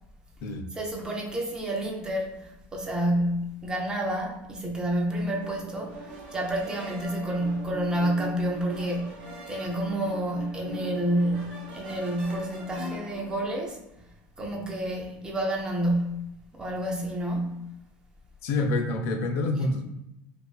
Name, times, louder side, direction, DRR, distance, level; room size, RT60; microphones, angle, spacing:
voice 1, 0.8-14.0 14.4-17.8, right 1 dB, 15° right, 0.5 m, -29 dB
sound 1, 5.1-13.4, right 2 dB, 85° right, 0.9 m, -42 dB
voice 2, 18.4-19.8, left 2 dB, 50° left, 0.4 m, -27 dB
2.4 x 2.3 x 2.3 m
supercardioid pair, 140°, 5 cm